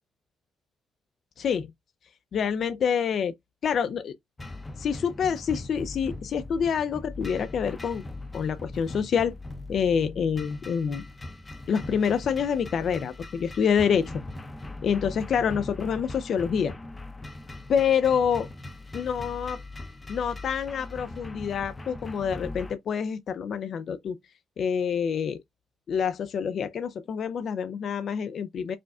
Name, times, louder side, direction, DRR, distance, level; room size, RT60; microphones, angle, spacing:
voice 1, 1.4-1.7 2.3-3.3 3.6-4.2 4.8-8.0 8.3-9.3 9.7-11.0 11.7-14.2 14.8-16.7 17.7-18.5 18.9-19.6 20.1-24.2 24.6-25.4 25.9-28.8, left 7 dB, 60° left, 0.5 m, -27 dB
sound 1, 4.4-22.7, left 2 dB, 20° left, 0.6 m, -40 dB
5.0 x 2.1 x 3.5 m
cardioid pair, 90°, 0 cm